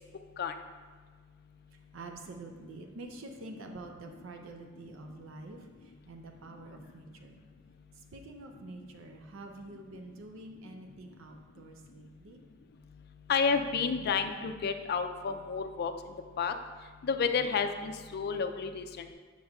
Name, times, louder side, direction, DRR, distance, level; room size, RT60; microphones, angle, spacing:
voice 1, 1.7-7.4 7.9-12.4 14.0-14.1, right 2 dB, 75° right, 3 dB, 0.5 m, -47 dB
voice 2, 13.3-15.9 16.4-16.5 17.0-19.1, left 5 dB, 55° left, 8 dB, 0.4 m, -30 dB
6.5 x 6.3 x 2.3 m, 1.5 s
head